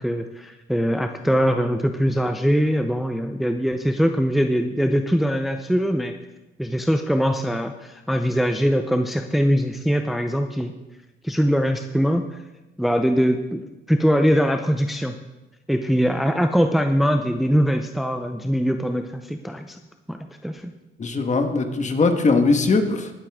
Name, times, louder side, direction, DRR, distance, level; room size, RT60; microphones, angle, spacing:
voice 1, 0.0-6.1 6.6-10.7 11.2-12.4 12.8-15.2 15.7-19.8 20.1-20.7, equal, ahead, 6 dB, 0.6 m, -22 dB
voice 2, 21.0-23.1, left 3 dB, 35° left, 6 dB, 1.5 m, -20 dB
19.5 x 7.4 x 3.6 m, 1.1 s
cardioid pair, 90°, 20 cm